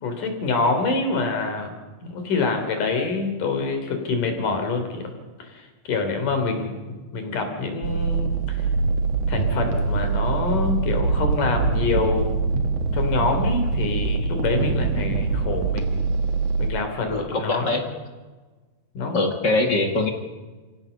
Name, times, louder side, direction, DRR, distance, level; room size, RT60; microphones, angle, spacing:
voice 1, 0.0-1.7 2.0-5.1 5.4-8.6 9.3-12.6 12.9-16.1 16.6-17.8 18.9-19.3, left 3 dB, 60° left, 5 dB, 4.6 m, -26 dB
sound 1, 7.8-16.7, right 4 dB, 50° right, 2.3 m, -24 dB
voice 2, 17.1-17.8 19.1-20.1, left 2 dB, 40° left, 4 dB, 1.9 m, -23 dB
29.0 x 16.0 x 6.9 m, 1.3 s
omnidirectional pair, 4.2 m